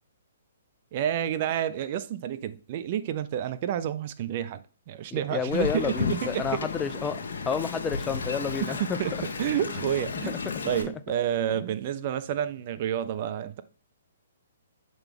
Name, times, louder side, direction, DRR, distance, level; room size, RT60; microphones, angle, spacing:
voice 1, 0.9-6.7 8.6-10.3 10.6-13.6, right 10 dB, 45° right, 0.5 m, -30 dB
voice 2, 5.1-8.8, left 6 dB, 15° left, 0.4 m, -30 dB
Wind, 5.5-10.8, left 5 dB, 70° left, 1.1 m, -33 dB
7.0 x 3.9 x 3.4 m
hypercardioid pair, 135°, 0 cm